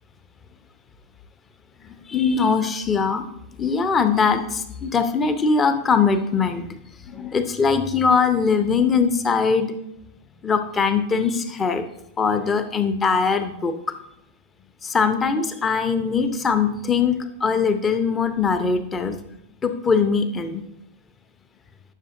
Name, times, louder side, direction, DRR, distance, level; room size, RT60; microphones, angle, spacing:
voice 1, 2.1-3.2 3.6-6.6 7.1-9.7 10.4-11.8 12.2-13.7 14.8-19.1 19.6-20.6, left 5 dB, 20° left, 9 dB, 0.7 m, -21 dB
9.9 x 6.3 x 2.6 m, 0.81 s
figure-of-eight pair, 90°, 0 cm